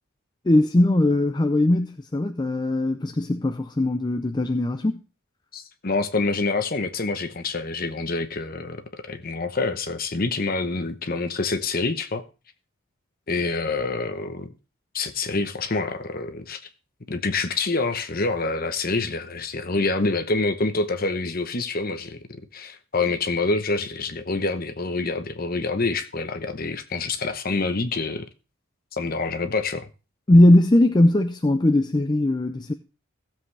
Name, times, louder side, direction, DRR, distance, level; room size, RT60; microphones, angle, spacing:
voice 1, 0.4-5.0 30.3-32.7, left 1 dB, 20° left, 0.4 m, -19 dB
voice 2, 5.5-12.2 13.3-14.5 14.9-16.6 17.1-22.2 22.5-28.3 28.9-29.9, left 3 dB, 40° left, 0.9 m, -26 dB
15.5 x 7.6 x 3.3 m
head